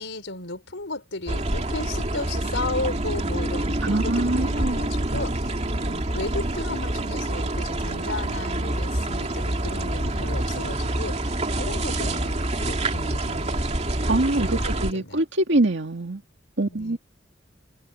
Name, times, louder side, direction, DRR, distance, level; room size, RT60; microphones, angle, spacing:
voice 1, 0.0-5.4 5.8-13.8 14.4-15.2 16.7-17.0, left 2 dB, 75° left, 5.3 m, -34 dB
sound 1, 1.3-14.9, right 1 dB, 35° right, 2.5 m, -27 dB
voice 2, 3.8-4.8 14.1-16.2 16.6-17.0, right 2 dB, 65° right, 2.2 m, -24 dB
head